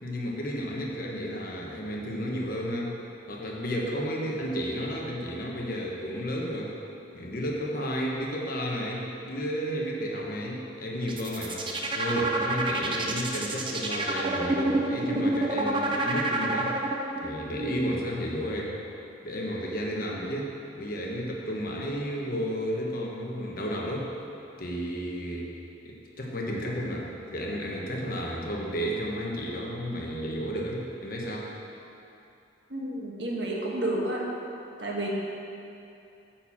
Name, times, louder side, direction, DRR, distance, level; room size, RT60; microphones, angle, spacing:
voice 1, 0.0-3.0 3.3-6.7 7.1-16.8 17.2-18.8 19.2-24.1 24.6-25.5 25.8-31.5, equal, 50° left, -2 dB, 1.2 m, -32 dB
sound 1, 11.0-17.3, right 2 dB, 25° right, 0.6 m, -28 dB
voice 2, 32.7-34.2 34.8-35.1, right 1 dB, 65° right, -2 dB, 1.5 m, -31 dB
9.2 x 4.5 x 7.2 m, 2.7 s
head